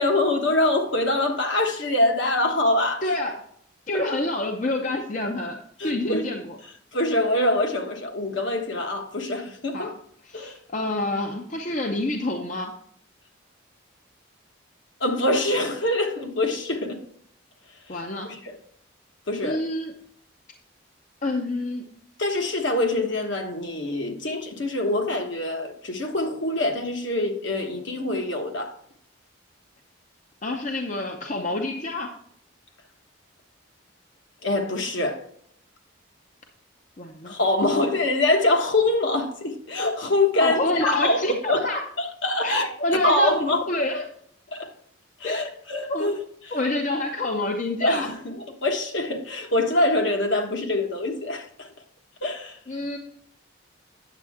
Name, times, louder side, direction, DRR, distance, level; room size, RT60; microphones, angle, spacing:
voice 1, 0.0-3.0 5.8-6.3 6.9-9.9 10.3-10.6 15.0-17.0 17.9-18.0 18.3-18.5 19.3-19.6 22.2-28.8 34.4-35.2 37.2-41.6 42.0-42.7 43.0-43.6 44.5-44.7 45.2-46.1 46.4-46.6 47.8-51.7 52.2-52.6, left 2 dB, 60° left, 1.2 m, -24 dB
voice 2, 3.0-3.3 3.9-5.6 5.8-6.6 9.7-9.9 10.3-12.7 17.9-18.3 19.4-19.9 21.2-21.8 30.4-32.2 37.0-37.3 40.4-41.8 42.4-43.3 43.7-44.0 45.2-45.4 45.9-46.1 46.5-48.1 52.7-53.0, left 2 dB, 35° left, 0.7 m, -27 dB
9.1 x 7.3 x 3.5 m
head